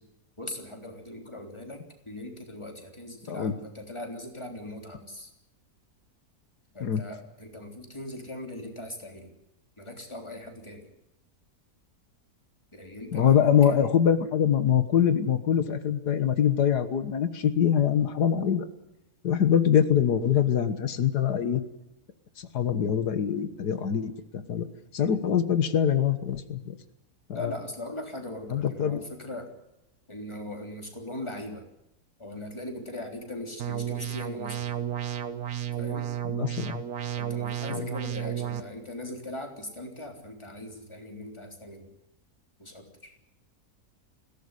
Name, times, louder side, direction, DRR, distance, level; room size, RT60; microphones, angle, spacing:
voice 1, 0.4-5.3 6.7-9.3 9.8-10.9 12.7-13.9 25.0-25.2 27.3-29.5 30.1-31.6 32.2-34.7 35.8-36.1 37.2-41.9 42.6-43.1, left 1 dB, 15° left, 3 dB, 3.6 m, -40 dB
voice 2, 13.1-18.7 19.2-21.6 22.4-24.7 24.9-26.8 27.3-27.5 28.5-29.0 36.4-36.8 37.7-37.9, left 8 dB, 90° left, 10 dB, 1.9 m, -24 dB
sound 1, 33.6-38.6, right 10 dB, 70° right, 1.7 m, -32 dB
21.0 x 17.0 x 9.8 m, 0.88 s
omnidirectional pair, 1.7 m